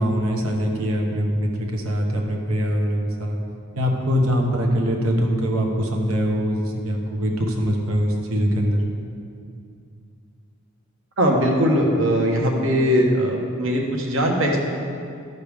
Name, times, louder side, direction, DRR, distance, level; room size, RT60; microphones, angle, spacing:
voice 1, 0.0-3.4 3.7-8.8, equal, 90° right, 1 dB, 1.2 m, -23 dB
voice 2, 11.2-14.6, equal, 70° right, 1 dB, 1.3 m, -20 dB
12.5 x 6.7 x 3.5 m, 2.5 s
head